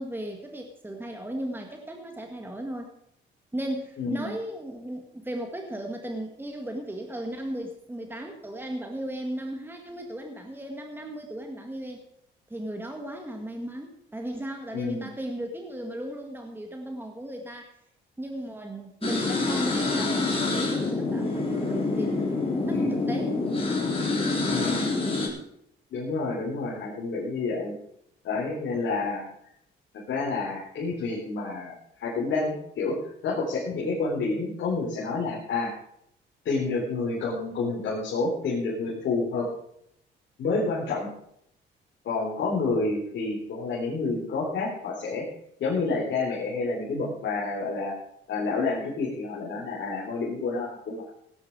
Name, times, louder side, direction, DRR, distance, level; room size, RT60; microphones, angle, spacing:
voice 1, 0.0-2.9 3.5-12.0 12.5-17.7 18.2-22.2 22.6-23.4, right 1 dB, 10° right, 3 dB, 1.9 m, -36 dB
voice 2, 4.0-4.3 14.7-15.1 22.7-23.0 24.5-24.9 25.9-27.7 28.2-29.3 30.1-33.0 33.2-35.7 36.4-39.5 40.4-41.1 42.0-45.2 45.6-47.9 48.3-51.1, left 3 dB, 70° left, -6 dB, 4.0 m, -29 dB
sound 1, 19.0-25.3, left 3 dB, 30° left, 4.1 m, -26 dB
17.0 x 10.0 x 4.8 m, 0.74 s
cardioid pair, 90°, 20 cm